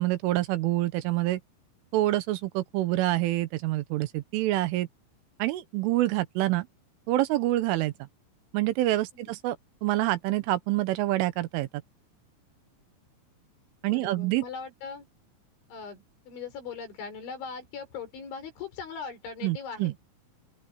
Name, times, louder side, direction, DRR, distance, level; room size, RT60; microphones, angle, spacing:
voice 1, 0.0-1.4 1.9-4.9 5.4-6.7 7.1-7.9 8.5-9.6 9.8-11.7 13.8-14.4 19.4-19.9, right 16 dB, 85° right, 3.7 m, -26 dB
voice 2, 13.9-15.1 15.7-20.0, left 5 dB, 70° left, 8.0 m, -40 dB
open air
omnidirectional pair, 5.6 m